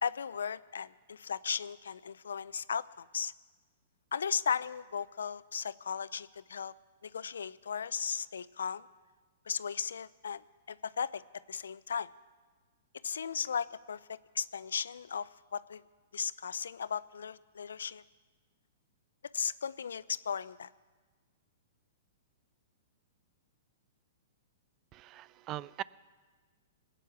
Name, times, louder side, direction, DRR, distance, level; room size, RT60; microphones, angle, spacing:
voice 1, 0.0-3.3 4.1-6.7 7.0-8.9 9.5-11.2 11.5-12.1 13.0-15.8 16.1-18.0 19.3-20.7, left 7 dB, 75° left, 18 dB, 0.5 m, -36 dB
voice 2, 24.9-25.8, right 14 dB, 35° right, 20 dB, 0.4 m, -41 dB
20.0 x 9.1 x 7.1 m, 1.4 s
hypercardioid pair, 115°, 0 cm